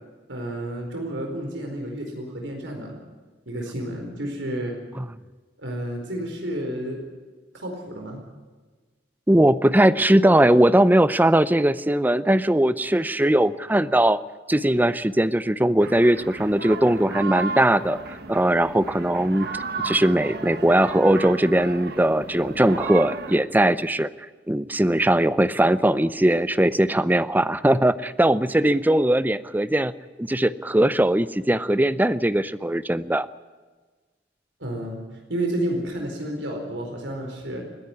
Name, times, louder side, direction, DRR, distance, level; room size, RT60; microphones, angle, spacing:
voice 1, 0.3-3.0 3.5-4.8 5.6-7.0 7.5-8.2 34.6-35.0 35.3-37.6, right 1 dB, 90° right, 2 dB, 4.6 m, -30 dB
voice 2, 9.3-14.2 14.5-18.0 18.3-19.5 19.8-24.1 24.5-29.9 30.2-33.3, right 1 dB, 10° right, 15 dB, 0.6 m, -20 dB
sound 1, 15.8-23.4, right 4 dB, 60° right, 1.5 m, -34 dB
29.0 x 10.5 x 9.8 m, 1.3 s
head